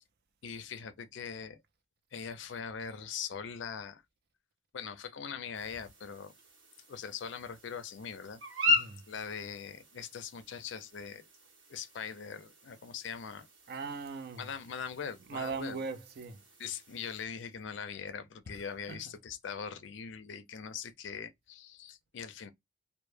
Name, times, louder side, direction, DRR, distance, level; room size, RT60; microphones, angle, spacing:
voice 1, 0.4-1.6 2.1-4.0 4.7-6.3 6.9-8.4 9.1-11.2 11.7-13.5 14.4-15.8 16.6-22.5, left 6 dB, 65° left, 0.4 m, -41 dB
sound 1, 5.5-17.3, left 2 dB, 75° right, 0.9 m, -39 dB
voice 2, 8.7-9.0 13.7-14.5 15.2-16.4 18.5-19.1, right 4 dB, 50° right, 0.4 m, -40 dB
2.1 x 2.1 x 3.0 m
head